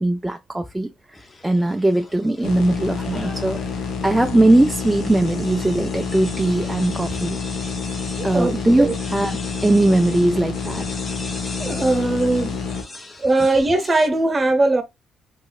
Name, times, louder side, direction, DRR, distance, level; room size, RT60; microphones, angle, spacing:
voice 1, 0.0-3.6 4.0-7.4 8.2-9.4 9.6-10.8, right 1 dB, 10° right, 0.4 m, -20 dB
sound 1, 1.1-14.1, left 2 dB, 30° left, 0.7 m, -39 dB
sound 2, 2.4-12.8, left 5 dB, 85° left, 0.8 m, -28 dB
voice 2, 8.2-8.9 11.6-12.6 13.2-14.8, right 2 dB, 25° right, 1.0 m, -20 dB
3.1 x 3.0 x 2.3 m
cardioid pair, 90°, 0 cm